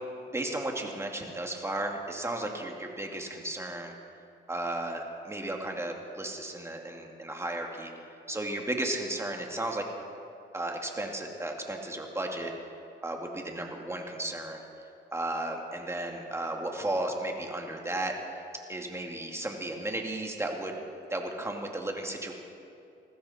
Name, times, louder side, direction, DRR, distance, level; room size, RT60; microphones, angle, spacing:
voice 1, 0.3-3.9 4.5-7.9 8.3-9.8 10.5-12.5 13.0-14.6 15.1-18.1 18.7-20.8 21.1-22.3, right 1 dB, 15° right, 2 dB, 2.2 m, -34 dB
20.0 x 15.0 x 4.3 m, 2.6 s
cardioid pair, 90°, 20 cm